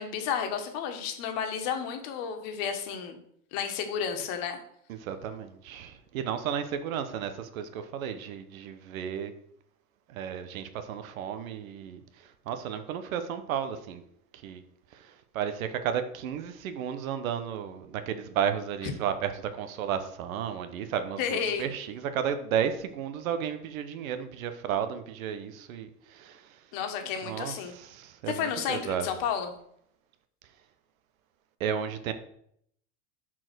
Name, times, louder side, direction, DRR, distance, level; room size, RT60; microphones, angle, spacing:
voice 1, 0.0-3.2 3.5-4.6 18.8-18.9 21.2-21.7 26.7-27.7 28.3-29.5, left 7 dB, 55° left, 5 dB, 1.6 m, -32 dB
voice 2, 4.9-9.3 10.1-12.0 12.5-14.0 14.4-14.6 14.9-15.1 15.3-26.4 27.2-29.1 31.6-32.1, right 8 dB, 85° right, 9 dB, 1.0 m, -33 dB
5.7 x 4.8 x 6.2 m, 0.70 s
supercardioid pair, 110°, 40 cm